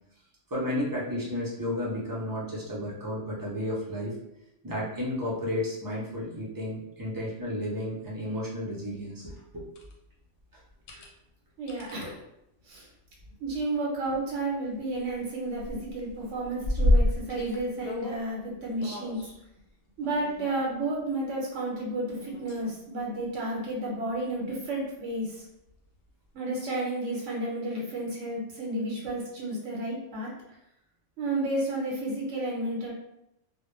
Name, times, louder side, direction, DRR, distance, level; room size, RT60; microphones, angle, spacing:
voice 1, 0.5-4.2 4.6-9.7 10.9-11.0, left 1 dB, 30° right, -6 dB, 0.4 m, -32 dB
sound 1, 9.8-9.9 10.7-11.1 11.7-12.0 13.2-13.5 13.9-14.0 14.3-15.3 15.6-18.2 18.8-19.4 20.0-20.9 22.2-22.7 23.2-23.3 25.7-25.8, left 1 dB, 65° left, 0.7 m, -29 dB
voice 2, 11.6-12.2 12.7-12.9 13.4-19.2 20.0-25.4 26.3-30.3 31.2-32.9, right 2 dB, 85° right, -3 dB, 1.0 m, -32 dB
2.1 x 2.1 x 3.0 m, 0.84 s
omnidirectional pair, 1.2 m